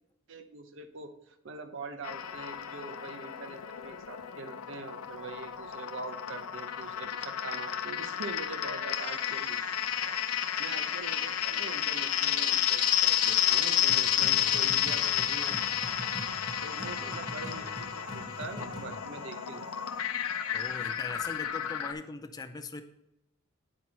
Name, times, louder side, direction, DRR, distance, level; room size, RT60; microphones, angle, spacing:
voice 1, 0.3-9.6 10.1-10.2 10.6-15.6 16.6-19.9, right 3 dB, 60° right, 8 dB, 0.7 m, -43 dB
sound 1, 2.0-21.9, left 11 dB, 90° left, 0.6 m, -31 dB
sound 2, 8.9-20.9, right 4 dB, 90° right, 0.8 m, -49 dB
sound 3, 13.9-19.0, equal, 20° right, 1.0 m, -44 dB
voice 2, 20.5-22.8, left 3 dB, 20° left, 7 dB, 0.4 m, -40 dB
9.4 x 4.4 x 4.3 m, 0.86 s
head